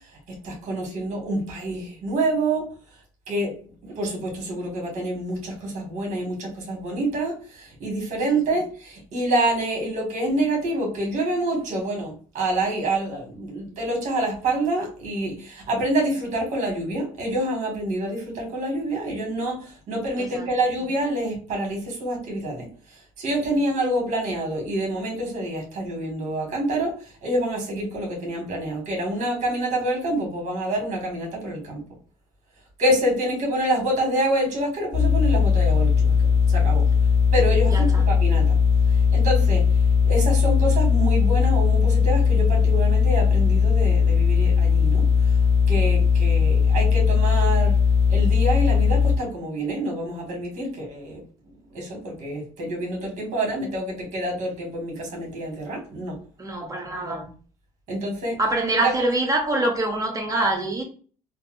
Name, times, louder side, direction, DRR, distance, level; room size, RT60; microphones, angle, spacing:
voice 1, 0.3-2.6 3.3-3.5 3.8-22.7 23.2-31.8 32.8-36.1 36.5-36.8 37.3-38.6 38.9-39.6 40.0-45.0 45.7-47.8 48.1-51.2 51.7-56.2 56.8-57.2 57.9-58.4 58.8-59.1, right 1 dB, 60° right, 1.5 m, -27 dB
ground hum, 34.9-49.2, left 6 dB, 50° left, 0.5 m, -19 dB
voice 2, 37.7-38.0 56.4-57.3 58.4-60.8, right 2 dB, 25° right, 1.1 m, -25 dB
4.1 x 2.0 x 2.4 m
cardioid pair, 95°, 14 cm